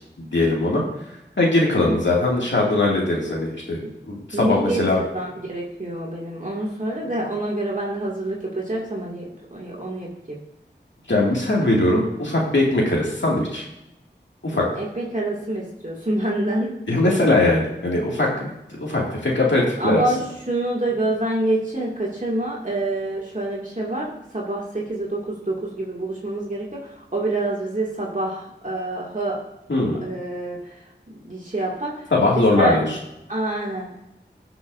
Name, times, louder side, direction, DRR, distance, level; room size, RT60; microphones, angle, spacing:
voice 1, 0.2-0.8 1.4-5.0 11.1-13.6 14.4-14.7 16.9-18.5 18.8-20.0 29.7-30.0 32.1-33.0, left 2 dB, 90° left, -3 dB, 2.2 m, -20 dB
voice 2, 4.3-10.4 14.5-16.7 19.8-20.2 20.5-26.8 27.1-29.4 30.0-30.6 31.1-31.9 32.4-32.8 33.3-34.0, right 1 dB, 45° right, -4 dB, 2.3 m, -27 dB
16.0 x 6.0 x 2.6 m, 0.88 s
wide cardioid pair, 45°, 19 cm